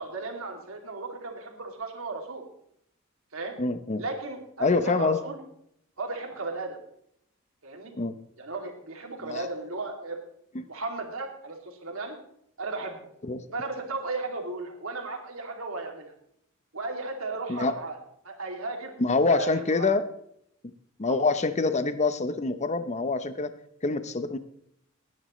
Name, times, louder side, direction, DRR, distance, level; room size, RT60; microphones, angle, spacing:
voice 1, 0.0-2.5 3.3-3.6 4.0-5.4 6.0-6.8 7.6-7.9 8.4-10.2 10.6-12.2 12.6-13.0 13.5-16.1 16.7-18.0 18.2-18.9 19.3-19.9 21.0-21.2, right 3 dB, 90° right, 2 dB, 2.6 m, -35 dB
voice 2, 3.6-4.0 4.6-5.2 8.0-8.1 9.2-9.5 13.2-13.4 17.5-17.7 19.0-20.1 21.0-23.5 23.8-24.4, left 3 dB, 35° left, 11 dB, 0.7 m, -25 dB
19.0 x 10.0 x 3.1 m, 0.71 s
head